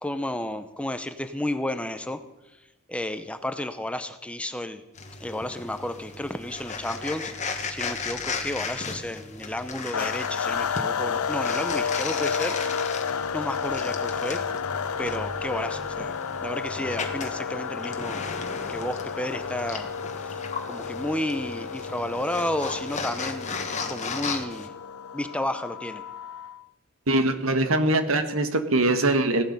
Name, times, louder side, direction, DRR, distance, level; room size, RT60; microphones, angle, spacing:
voice 1, 0.0-2.2 2.9-4.8 5.2-13.1 13.3-14.4 15.0-18.2 18.7-19.9 20.2-24.7 25.1-26.0, left 1 dB, 5° left, 9 dB, 0.7 m, -32 dB
sound 1, 4.9-24.7, left 4 dB, 35° left, 1.5 m, -36 dB
sound 2, 9.9-26.6, left 6 dB, 85° left, 0.6 m, -31 dB
voice 2, 27.1-29.4, right 2 dB, 70° right, 8 dB, 1.5 m, -22 dB
16.5 x 11.5 x 5.4 m, 1.0 s
head